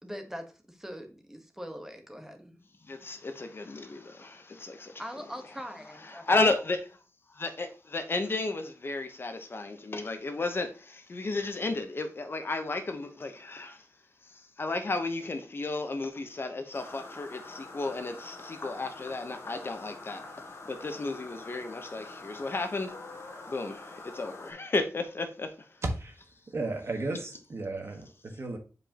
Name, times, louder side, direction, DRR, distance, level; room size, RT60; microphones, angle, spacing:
voice 1, 0.0-2.6 5.0-6.2, equal, 5° right, 1.2 m, -42 dB
voice 2, 2.9-5.0 6.1-7.0 7.3-13.9 14.3-22.9 23.5-25.7, left 3 dB, 45° left, 0.9 m, -33 dB
sound 1, 16.7-24.5, left 3 dB, 60° left, 1.9 m, -45 dB
voice 3, 26.5-28.6, right 3 dB, 50° right, 1.4 m, -35 dB
7.5 x 5.1 x 2.9 m
wide cardioid pair, 110°, 6 cm